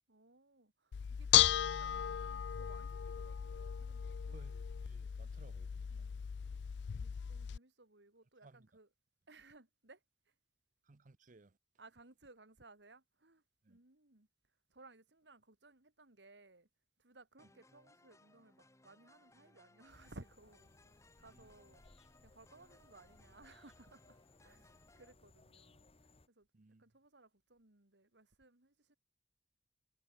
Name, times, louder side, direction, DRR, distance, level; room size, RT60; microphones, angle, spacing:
voice 1, 0.1-4.5 5.9-6.6 6.9-8.9 9.3-10.3 11.8-14.3 14.7-16.7 17.0-21.8 22.2-26.5 26.8-29.0, right 2 dB, 75° right, 2.7 m, -61 dB
Bell / Dishes pots and pans, 0.9-7.6, left 11 dB, 70° left, 0.4 m, -35 dB
voice 2, 4.3-5.9 8.4-8.7 10.9-11.6 13.6-13.8 21.3-21.5 26.5-26.8, right 3 dB, 45° right, 0.7 m, -61 dB
sound 1, 17.4-25.1, left 2 dB, 15° left, 2.9 m, -67 dB
sound 2, 19.9-26.3, left 2 dB, 35° left, 1.0 m, -65 dB
head